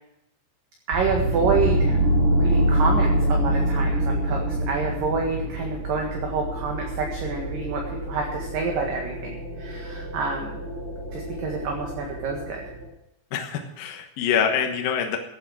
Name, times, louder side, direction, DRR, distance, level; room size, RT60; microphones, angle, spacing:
voice 1, 0.9-2.0 2.3-10.6 11.1-12.6, right 4 dB, 55° right, 1 dB, 3.0 m, -28 dB
sound 1, 0.9-12.9, right 1 dB, 70° right, 5.3 m, -26 dB
voice 2, 13.3-15.2, left 7 dB, 65° left, 3 dB, 2.6 m, -25 dB
16.0 x 9.4 x 6.2 m, 0.87 s
omnidirectional pair, 5.3 m